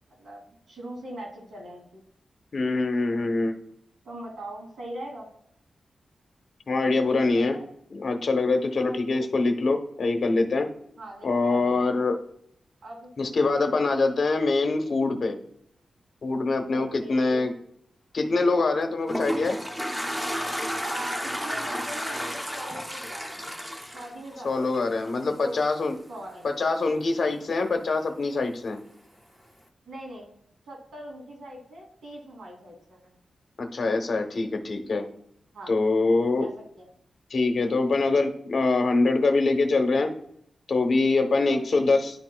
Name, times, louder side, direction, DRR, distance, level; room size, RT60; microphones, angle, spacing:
voice 1, 0.2-2.0 4.0-5.3 6.8-7.6 8.8-9.3 11.0-11.9 12.8-13.1 16.7-17.4 20.8-23.5 23.9-25.6 26.1-26.5 29.9-30.3 30.7-33.2 35.5-35.7 36.4-36.5 36.8-36.9 41.5-41.9, right 1 dB, 85° right, -1 dB, 2.5 m, -41 dB
voice 2, 2.5-3.6 6.7-7.6 7.9-10.7 11.2-12.2 13.2-15.4 16.2-17.5 18.1-19.6 24.4-25.9 26.4-28.8 33.6-35.0 35.7-36.5 37.3-40.1 40.7-42.1, left 3 dB, 55° left, 5 dB, 0.9 m, -24 dB
Toilet flush, 18.7-25.1, equal, 5° right, 0.7 m, -32 dB
10.5 x 4.2 x 2.2 m, 0.68 s
wide cardioid pair, 120°, 0 cm